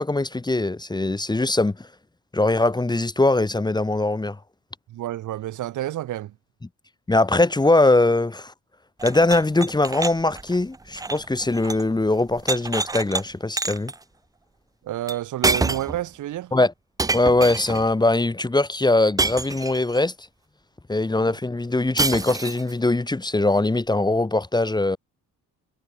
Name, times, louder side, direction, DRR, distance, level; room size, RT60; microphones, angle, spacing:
voice 1, 0.0-1.9 2.3-4.4 7.1-8.5 9.0-13.9 16.5-16.7 17.1-20.1 20.9-25.0, left 2 dB, 15° left, 1.5 m, -21 dB
voice 2, 4.9-6.3 14.8-16.5, right 14 dB, 80° right, 2.5 m, -29 dB
sound 1, 9.0-11.9 12.2-13.2 13.6-14.0 15.1-15.2 15.4-16.0 17.0-17.9 19.2-20.0 22.0-22.7, right 3 dB, 10° right, 0.5 m, -27 dB
cardioid pair, 90°, 30 cm